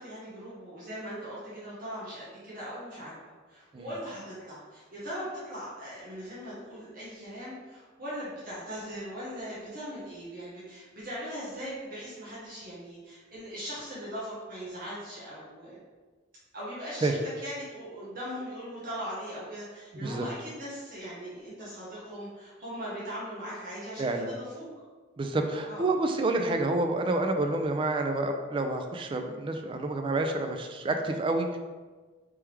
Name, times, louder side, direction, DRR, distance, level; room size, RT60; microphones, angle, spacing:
voice 1, 0.0-3.1 3.5-15.8 16.5-24.7 25.7-25.9, equal, 50° right, -9 dB, 1.1 m, -40 dB
voice 2, 24.0-24.3 25.2-31.6, right 2 dB, 25° right, 5 dB, 0.3 m, -28 dB
3.4 x 3.2 x 3.3 m, 1.4 s
head